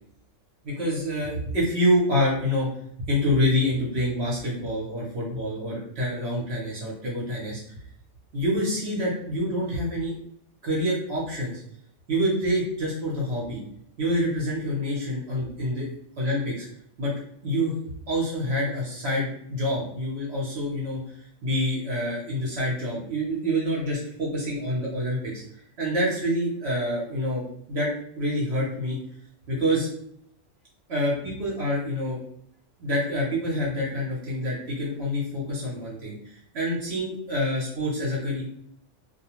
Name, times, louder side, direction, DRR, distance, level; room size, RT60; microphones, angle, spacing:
voice 1, 0.6-2.7 3.0-7.6 8.3-10.1 10.6-11.6 12.1-13.6 14.0-15.9 16.2-16.7 17.0-17.1 17.4-17.7 18.1-21.0 21.4-25.3 25.8-27.9 28.2-29.0 29.5-29.9 30.9-32.2 32.8-36.2 36.5-38.4, equal, 55° right, -4 dB, 1.0 m, -26 dB
2.4 x 2.2 x 2.9 m, 0.69 s
omnidirectional pair, 1.4 m